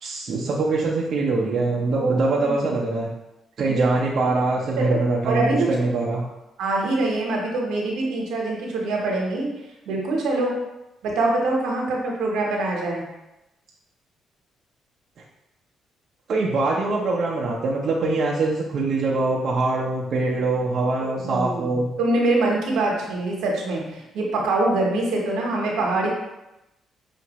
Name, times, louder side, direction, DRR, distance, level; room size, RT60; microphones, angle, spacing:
voice 1, 0.0-3.1 3.6-6.2 16.3-21.9, right 3 dB, 60° right, -3 dB, 0.6 m, -23 dB
voice 2, 1.9-2.8 3.7-3.9 4.8-5.0 5.2-5.7 6.6-9.5 9.9-10.5 11.0-13.1 21.0-26.1, right 2 dB, 85° right, -1 dB, 1.0 m, -24 dB
5.7 x 2.5 x 3.0 m, 0.94 s
cardioid pair, 90°, 0 cm